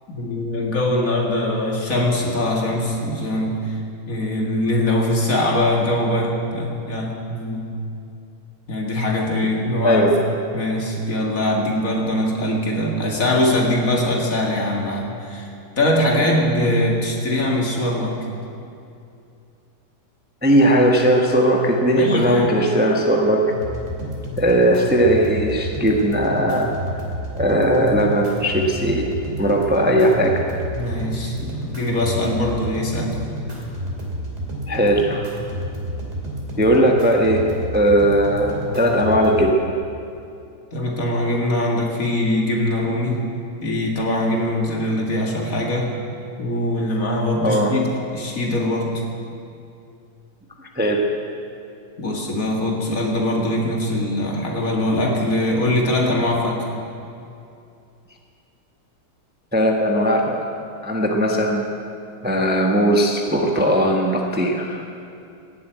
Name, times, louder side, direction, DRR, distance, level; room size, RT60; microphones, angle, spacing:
voice 1, 0.1-3.8 4.1-7.7 8.7-10.1 10.5-18.2 22.0-22.6 30.7-33.2 40.7-43.3 43.6-46.0 46.4-48.9 52.0-56.7, left 1 dB, 50° left, -1 dB, 2.5 m, -22 dB
voice 2, 20.4-23.4 24.4-26.7 27.4-29.1 29.4-30.5 34.7-35.2 36.6-37.4 37.7-39.6 47.4-47.7 50.8-51.0 59.5-60.5 60.8-61.6 62.2-64.8, equal, 5° right, 0 dB, 1.1 m, -18 dB
sound 1, 23.5-39.5, equal, 40° right, 3.1 m, -30 dB
17.0 x 8.2 x 9.2 m, 2.6 s
omnidirectional pair, 1.8 m